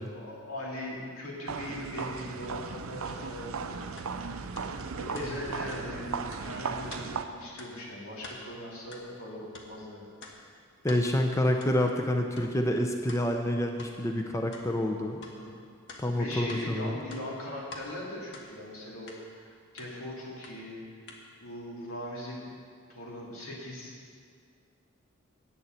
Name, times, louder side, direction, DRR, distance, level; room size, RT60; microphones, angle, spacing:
voice 1, 0.0-4.3 4.9-10.1 14.8-14.9 15.4-15.5 16.2-20.8 21.4-22.5 22.9-23.9, left 1 dB, 90° left, -4 dB, 2.6 m, -40 dB
sound 1, 1.5-7.2, right 5 dB, 80° right, 0.5 m, -36 dB
sound 2, 4.0-4.1 4.6-4.7 5.1-5.3 5.7-5.8 6.3-6.5 6.9-7.1 7.6-7.7 8.1-8.4 8.9-9.1 9.5-9.7 10.2-10.4 10.9-11.0 11.6-11.7 12.4-12.5 13.1-13.2 13.8-13.9 14.5-14.7 15.2-15.3 15.9-16.6 17.0-17.9 18.3-18.5 19.1-19.2 19.8-19.9 20.4-20.5 21.1-21.2, left 3 dB, 60° left, 1.3 m, -46 dB
voice 2, 10.8-15.2 16.0-17.0, left 1 dB, 15° left, 3 dB, 0.5 m, -28 dB
9.0 x 6.9 x 8.0 m, 2.1 s
head